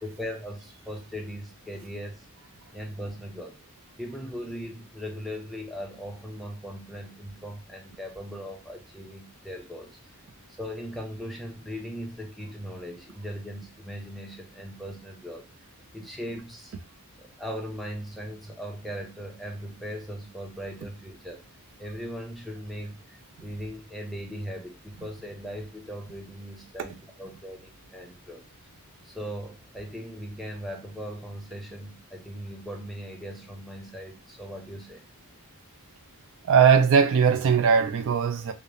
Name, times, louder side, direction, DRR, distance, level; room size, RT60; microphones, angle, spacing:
voice 1, 0.0-2.3 2.7-3.6 4.0-10.1 10.6-15.5 15.9-16.7 17.2-21.4 21.8-28.5 29.0-35.0, equal, ahead, 0.4 m, -39 dB
voice 2, 36.4-38.5, right 6 dB, 60° right, 0.3 m, -19 dB
2.4 x 2.0 x 2.8 m
head